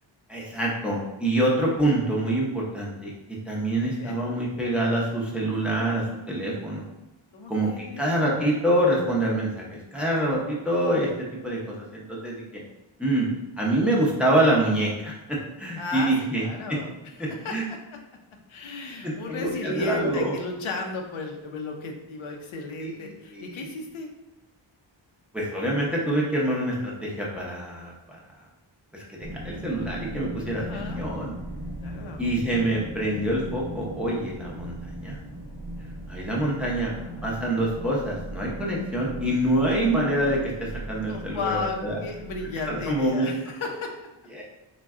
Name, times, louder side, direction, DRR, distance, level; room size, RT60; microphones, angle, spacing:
voice 1, 0.3-3.1 3.5-6.8 7.5-11.1 11.4-12.4 13.0-13.3 13.6-16.4 16.7-16.8 17.2-17.6 19.0-20.3 22.8-23.5 25.3-28.2 28.9-29.0 29.4-31.3 32.2-35.2 36.1-36.9 37.2-42.0 42.7-43.3 44.3-44.4, right 1 dB, ahead, -4 dB, 0.7 m, -26 dB
voice 2, 3.7-4.2 7.3-8.1 15.8-16.1 16.4-17.8 18.5-24.1 30.5-31.1 31.8-32.2 36.3-37.4 41.0-43.9, left 3 dB, 80° left, 2 dB, 0.7 m, -35 dB
sound 1, 29.2-43.1, right 1 dB, 35° right, 0.7 m, -38 dB
3.9 x 2.2 x 3.5 m, 0.99 s
wide cardioid pair, 150°, 47 cm